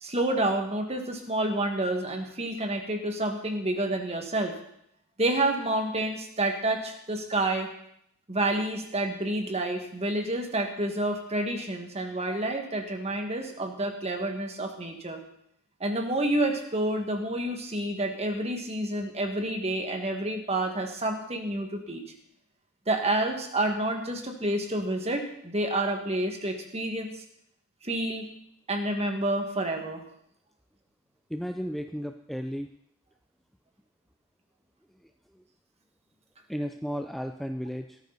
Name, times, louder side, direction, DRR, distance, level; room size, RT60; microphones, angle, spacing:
voice 1, 0.0-4.6 5.2-7.7 8.3-15.2 15.8-22.0 22.9-27.2 27.8-28.3 28.7-30.0, right 1 dB, 30° right, 4 dB, 1.9 m, -29 dB
voice 2, 31.3-32.7 35.3-35.4 36.5-38.0, equal, ahead, 6 dB, 0.5 m, -34 dB
17.5 x 13.5 x 4.1 m, 0.72 s
head